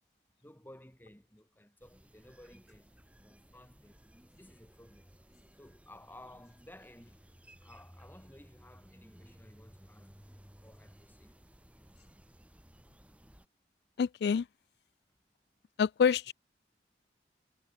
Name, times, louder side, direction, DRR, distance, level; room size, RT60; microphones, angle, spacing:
voice 1, 0.4-2.9 3.2-4.0 4.3-5.1 5.5-7.3 7.6-10.1 10.6-11.4, left 1 dB, 10° left, 3.3 m, -56 dB
sound 1, 1.8-13.5, equal, 5° right, 1.5 m, -58 dB
voice 2, 14.0-14.4 15.8-16.3, left 6 dB, 65° left, 0.3 m, -27 dB
head